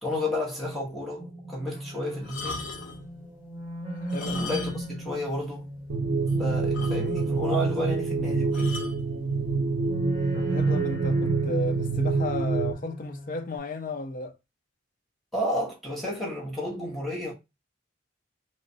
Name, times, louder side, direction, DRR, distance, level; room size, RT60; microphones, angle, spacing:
voice 1, 0.0-2.6 4.2-5.7 6.4-8.8 15.3-17.3, left 1 dB, ahead, 0.8 m, -31 dB
sound 1, 1.2-8.8 9.8-13.6, right 1 dB, 20° right, 1.4 m, -38 dB
sound 2, 2.2-3.1 4.0-5.0 5.3-5.4 5.9-6.0 6.3-6.4 6.7-7.4 8.5-9.0 9.8-10.1, left 4 dB, 70° left, 1.0 m, -38 dB
voice 2, 3.9-4.4 10.3-14.4, left 2 dB, 40° left, 0.5 m, -34 dB
sound 3, 5.9-12.7, right 4 dB, 75° right, 0.6 m, -26 dB
3.1 x 3.0 x 2.6 m
head